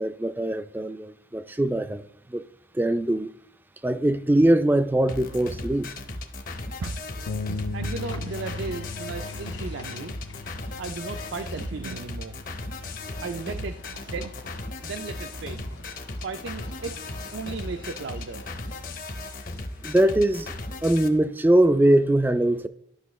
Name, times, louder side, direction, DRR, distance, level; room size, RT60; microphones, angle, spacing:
voice 1, 0.0-2.0 2.3-2.5 2.7-3.3 3.8-5.9 19.8-20.6 20.8-22.7, right 1 dB, 10° right, 0.3 m, -22 dB
sound 1, 5.1-21.1, left 2 dB, 45° left, 0.8 m, -37 dB
Bass guitar, 7.3-13.5, left 3 dB, 70° left, 0.4 m, -38 dB
voice 2, 7.4-10.1 10.8-12.3 13.2-14.5 14.8-15.7 16.2-17.0 17.3-18.4, right 4 dB, 75° right, 0.5 m, -35 dB
sound 2, 8.0-11.7 12.7-19.1, left 3 dB, 90° left, 1.2 m, -48 dB
12.0 x 5.8 x 3.1 m
head